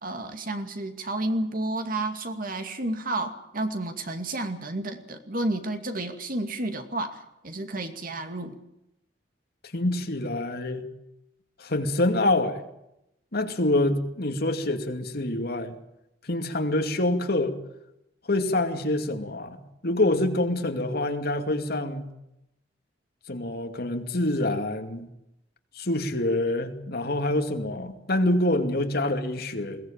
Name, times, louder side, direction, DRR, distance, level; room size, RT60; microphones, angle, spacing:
voice 1, 0.0-8.6, right 2 dB, 50° right, 7 dB, 2.4 m, -31 dB
voice 2, 9.7-10.8 11.6-12.6 13.3-15.8 16.2-17.6 18.3-22.1 23.3-25.1 25.7-29.8, left 1 dB, 60° left, 6 dB, 2.5 m, -26 dB
21.5 x 18.0 x 8.9 m, 0.84 s
head